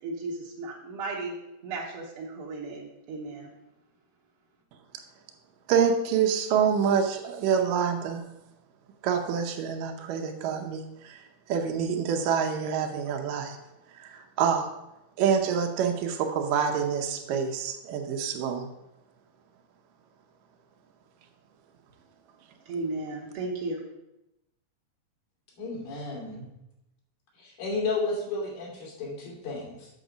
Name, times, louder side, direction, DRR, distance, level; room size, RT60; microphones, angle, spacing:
voice 1, 0.0-1.3 1.6-3.5 22.7-23.8, right 3 dB, 55° right, -5 dB, 1.7 m, -35 dB
voice 2, 5.7-8.2 9.0-11.2 11.5-13.6 14.0-14.7 15.2-18.7, right 7 dB, 75° right, 4 dB, 2.6 m, -26 dB
voice 3, 25.6-26.5 27.4-29.9, left 3 dB, 85° left, -3 dB, 4.3 m, -32 dB
8.3 x 6.8 x 5.1 m, 0.89 s
omnidirectional pair, 3.9 m